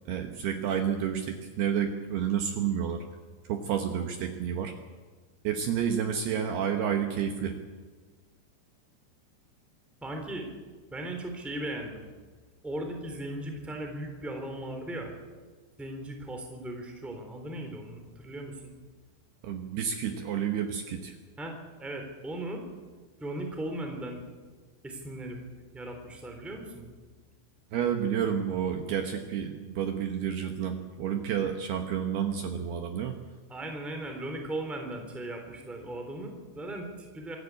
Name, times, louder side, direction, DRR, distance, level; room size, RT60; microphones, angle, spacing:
voice 1, 0.1-3.0 3.5-4.7 5.4-7.6 19.4-21.1 27.7-33.1, right 8 dB, 70° right, 5 dB, 2.8 m, -30 dB
voice 2, 10.0-10.5 10.9-12.1 12.6-15.1 15.8-18.7 21.4-22.6 23.2-24.2 24.8-25.4 25.7-26.9 33.5-37.4, right 1 dB, ahead, 4 dB, 2.5 m, -37 dB
25.0 x 14.0 x 8.4 m, 1.4 s
omnidirectional pair, 5.5 m